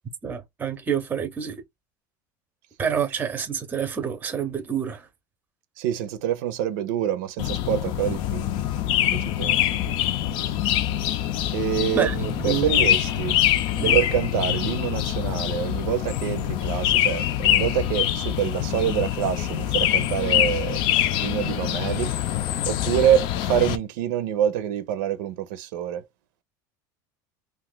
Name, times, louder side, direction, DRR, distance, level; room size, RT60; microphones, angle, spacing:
voice 1, 0.2-1.6 2.8-5.0 12.0-12.7 13.8-14.0, right 8 dB, 15° right, 0.6 m, -27 dB
voice 2, 5.8-8.5 9.1-9.6 11.5-13.3 13.8-20.8 21.2-22.1 22.7-26.1, right 10 dB, 75° right, 0.6 m, -26 dB
sound 1, 7.4-23.8, left 12 dB, 50° left, 0.5 m, -24 dB
2.6 x 2.4 x 3.8 m
supercardioid pair, 145°, 10 cm